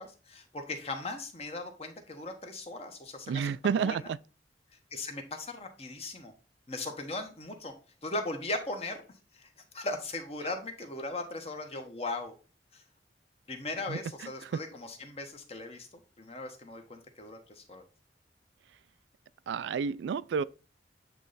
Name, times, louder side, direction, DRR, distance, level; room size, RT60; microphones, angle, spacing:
voice 1, 0.0-4.1 4.9-6.3 6.7-7.7 8.0-9.0 9.3-12.4 12.7-12.8 13.5-15.9 16.2-17.8, left 2 dB, 35° left, 1.1 m, -38 dB
voice 2, 3.3-4.2 13.9-14.0 14.4-14.5 19.5-20.4, right 6 dB, 80° right, 0.3 m, -30 dB
8.3 x 3.2 x 4.0 m
head